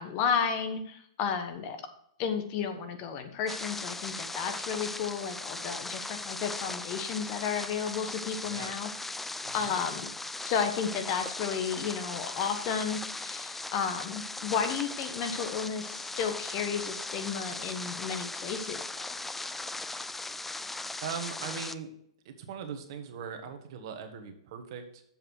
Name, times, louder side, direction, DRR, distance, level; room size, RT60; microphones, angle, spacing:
voice 1, 0.0-1.8 2.2-8.9 9.5-10.1 10.4-19.2 19.9-20.0, left 7 dB, 40° left, 7 dB, 1.2 m, -33 dB
sound 1, 3.5-21.7, left 2 dB, 5° left, 0.3 m, -38 dB
voice 2, 21.0-21.9 22.2-25.0, right 7 dB, 55° right, 6 dB, 1.4 m, -40 dB
7.4 x 5.4 x 6.3 m, 0.70 s
hypercardioid pair, 120°, 3 cm